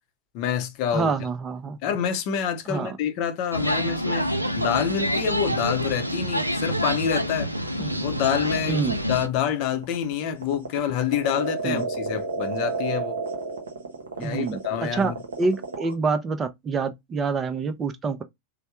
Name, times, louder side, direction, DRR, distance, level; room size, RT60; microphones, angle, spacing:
voice 1, 0.3-1.1 1.8-4.3 4.6-7.5 8.0-8.8 9.1-13.2 14.2-15.2, left 9 dB, 45° left, 0.6 m, -27 dB
voice 2, 0.9-1.8 2.7-3.0 7.8-8.0 8.7-9.0 11.6-11.9 14.2-15.1 15.4-18.2, right 4 dB, 20° right, 0.5 m, -27 dB
sound 1, 3.5-9.3, equal, 90° right, 0.4 m, -27 dB
sound 2, 7.0-15.9, right 3 dB, 70° right, 0.7 m, -32 dB
3.2 x 2.1 x 2.9 m
figure-of-eight pair, 90°, 0 cm